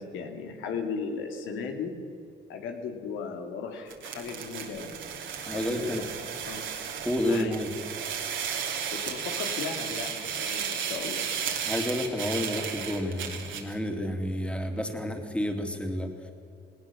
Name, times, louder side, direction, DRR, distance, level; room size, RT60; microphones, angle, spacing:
voice 1, 0.0-1.9 2.5-5.0 5.5-5.9 6.5-6.6 7.2-7.5 8.9-11.3, left 5 dB, 90° left, 4 dB, 2.6 m, -36 dB
sound 1, 3.9-13.7, right 7 dB, 75° right, 2.9 m, -34 dB
voice 2, 5.4-6.1 7.0-7.7 11.6-16.3, left 1 dB, 5° left, 4 dB, 3.1 m, -30 dB
19.0 x 18.5 x 7.4 m, 2.6 s
cardioid pair, 90°, 20 cm